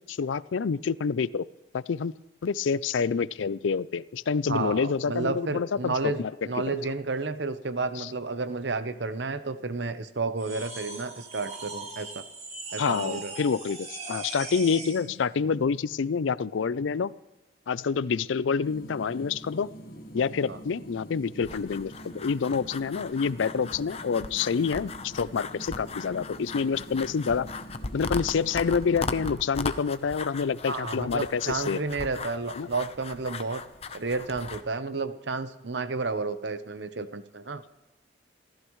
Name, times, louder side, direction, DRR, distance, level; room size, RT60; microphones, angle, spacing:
voice 1, 0.1-1.5 1.7-2.1 2.4-6.3 6.7-6.8 8.0-8.1 12.8-17.1 17.7-19.7 20.1-27.5 27.9-31.8 32.6-32.7, left 5 dB, 80° left, 19 dB, 0.4 m, -27 dB
voice 2, 4.5-12.2 12.7-13.3 20.5-20.6 30.7-33.6 33.9-37.6, right 3 dB, 65° right, 11 dB, 0.9 m, -31 dB
sound 1, 10.4-15.1, right 3 dB, 35° right, 2.5 m, -39 dB
sound 2, 18.6-29.2, right 1 dB, 50° left, 1.5 m, -45 dB
sound 3, 21.4-34.6, left 4 dB, 30° left, 0.7 m, -38 dB
27.0 x 14.5 x 3.2 m, 1.0 s
head